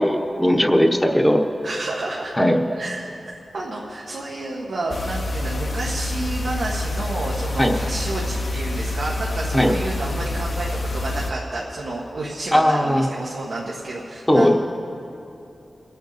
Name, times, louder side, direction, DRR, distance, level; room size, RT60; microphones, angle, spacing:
voice 1, 0.0-1.4 2.4-2.6 7.6-7.7 9.5-9.7 12.5-13.1 14.3-14.6, equal, 10° left, 3 dB, 1.0 m, -17 dB
voice 2, 1.6-2.3 2.8-14.6, right 2 dB, 80° right, -4 dB, 1.6 m, -30 dB
sound 1, 4.9-11.3, left 1 dB, 60° left, 1.0 m, -27 dB
25.5 x 8.5 x 4.2 m, 2.7 s
wide cardioid pair, 110°, 0 cm